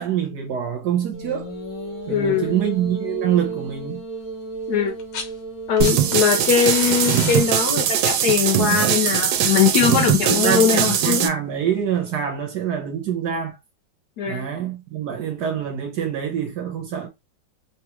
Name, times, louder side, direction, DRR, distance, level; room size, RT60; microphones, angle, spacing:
voice 1, 0.0-1.5 2.1-4.0 10.3-13.6 14.3-17.1, right 9 dB, 65° right, 1.3 m, -25 dB
sound 1, 1.1-8.5, right 3 dB, 25° left, 0.5 m, -34 dB
voice 2, 2.1-2.5 4.7-4.9 5.7-11.3 14.2-14.5, left 7 dB, 70° left, 1.0 m, -20 dB
sound 2, 4.9-5.4 5.6-10.5 11.7-11.8, left 5 dB, 90° left, 1.7 m, -35 dB
sound 3, 5.8-11.3, right 9 dB, 85° right, 1.4 m, -21 dB
3.6 x 2.4 x 2.9 m
omnidirectional pair, 2.2 m